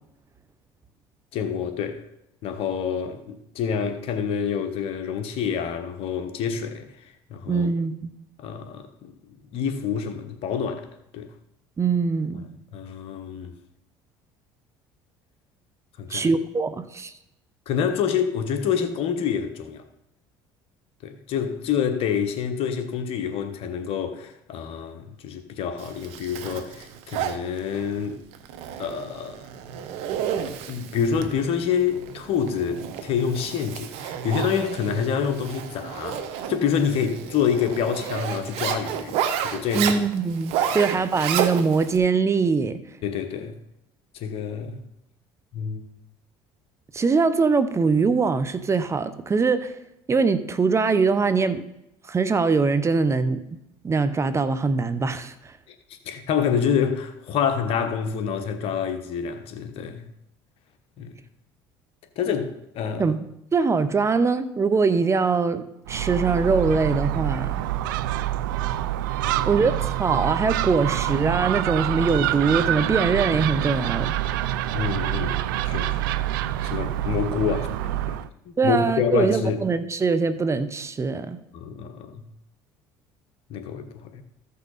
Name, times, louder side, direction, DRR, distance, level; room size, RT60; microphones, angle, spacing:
voice 1, 1.3-2.0 2.4-7.7 8.4-9.1 9.5-10.9 11.1-11.3 12.7-13.5 16.0-16.3 17.7-19.8 21.0-28.2 28.8-29.4 30.7-39.2 39.4-39.9 40.6-40.8 43.0-43.5 44.1-44.8 45.5-45.8 55.7-60.0 61.0-61.1 62.2-63.1 69.2-69.6 74.7-75.4 75.6-76.0 76.6-78.2 78.4-79.6 81.5-82.2 83.5-84.2, left 7 dB, 60° left, 1.2 m, -27 dB
voice 2, 7.5-8.1 11.8-12.4 16.1-17.1 39.7-42.8 46.9-49.8 50.1-51.7 52.1-53.4 53.8-55.3 63.0-63.2 63.5-67.6 69.5-74.1 78.6-81.4, right 4 dB, 25° right, 0.8 m, -22 dB
Zipper (clothing), 25.8-42.0, right 9 dB, 70° right, 0.9 m, -31 dB
Gull seagull, 65.9-78.3, right 13 dB, 90° right, 0.4 m, -26 dB
14.5 x 5.7 x 4.0 m
supercardioid pair, 80°, 11 cm